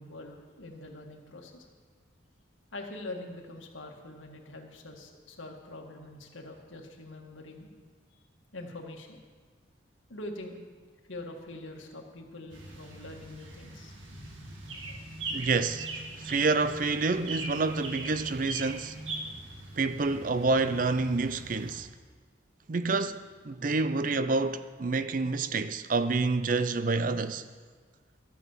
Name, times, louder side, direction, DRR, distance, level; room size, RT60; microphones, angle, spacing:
voice 1, 0.0-1.7 2.7-7.7 8.5-9.2 10.1-10.6 11.1-15.0, left 2 dB, 90° left, 1.9 m, -44 dB
sound 1, 12.5-21.8, right 2 dB, 85° right, 1.9 m, -41 dB
voice 2, 15.3-19.0 19.8-21.9 22.7-27.5, right 3 dB, 45° right, 0.5 m, -28 dB
13.5 x 8.4 x 7.3 m
head